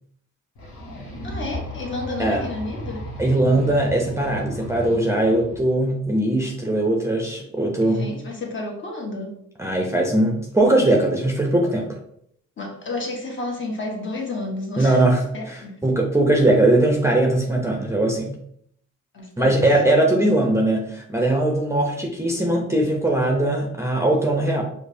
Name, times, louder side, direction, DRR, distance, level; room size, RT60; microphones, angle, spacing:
sound 1, 0.5-5.6, equal, 70° left, 1.1 m, -35 dB
voice 1, 1.0-3.0 7.8-9.4 12.6-15.0 15.3-15.8 19.1-19.6, left 2 dB, 40° left, 0 dB, 1.0 m, -31 dB
voice 2, 3.2-8.1 9.6-11.9 14.8-18.4 19.4-24.6, right 1 dB, 10° right, 0 dB, 0.6 m, -20 dB
5.0 x 2.1 x 2.6 m, 0.69 s
cardioid pair, 90°, 30 cm